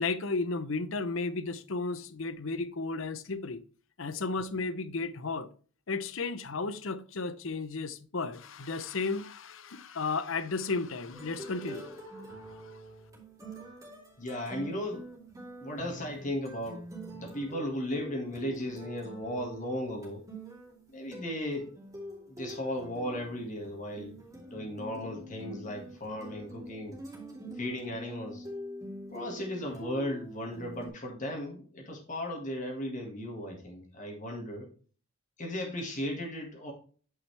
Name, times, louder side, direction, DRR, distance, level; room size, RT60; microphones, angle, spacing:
voice 1, 0.0-3.6 4.0-5.5 5.9-12.7, left 3 dB, 65° left, 0.7 m, -34 dB
sound 1, 11.1-30.9, right 1 dB, 15° right, 2.4 m, -45 dB
voice 2, 14.2-15.0 15.6-16.9 17.2-20.2 20.9-21.7 22.3-24.2 24.5-27.0 27.6-28.4 29.1-34.7 35.4-36.7, left 1 dB, 35° left, 2.0 m, -36 dB
9.4 x 5.7 x 3.4 m
head